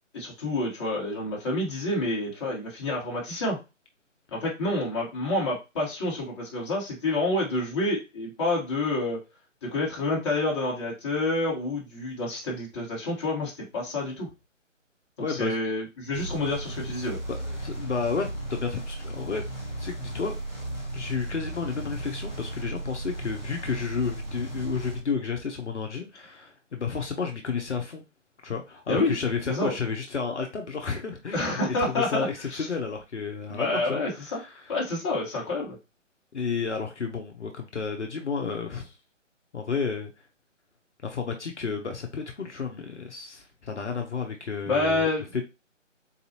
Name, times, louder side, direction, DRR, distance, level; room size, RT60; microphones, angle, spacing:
voice 1, 0.1-3.6 4.3-9.2 9.7-14.3 15.3-17.2 28.9-29.1 29.5-29.8 31.3-32.7 33.5-34.4 34.7-35.8 44.6-45.4, left 2 dB, 20° left, -4 dB, 1.2 m, -28 dB
voice 2, 15.2-15.6 17.4-19.4 19.8-20.3 20.9-28.0 28.4-34.7 36.3-38.9 39.5-40.1 41.0-45.4, left 5 dB, 65° left, 3 dB, 0.8 m, -32 dB
sound 1, 16.1-25.0, right 1 dB, 10° right, 0.7 m, -35 dB
4.0 x 2.6 x 2.8 m, 0.26 s
figure-of-eight pair, 145°, 39 cm